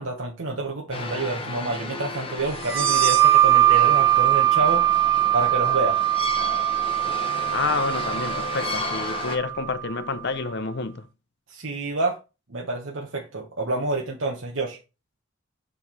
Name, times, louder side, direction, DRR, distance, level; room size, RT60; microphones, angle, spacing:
voice 1, 0.0-4.9 5.3-6.0 11.5-12.2 12.5-14.8, right 2 dB, 70° right, 1.1 m, -28 dB
sound 1, 0.9-9.4, left 3 dB, 25° left, 1.0 m, -34 dB
sound 2, 2.6-9.9, right 13 dB, 90° right, 3.0 m, -21 dB
voice 2, 7.5-11.1, left 4 dB, 55° left, 0.7 m, -29 dB
4.8 x 4.6 x 5.6 m
head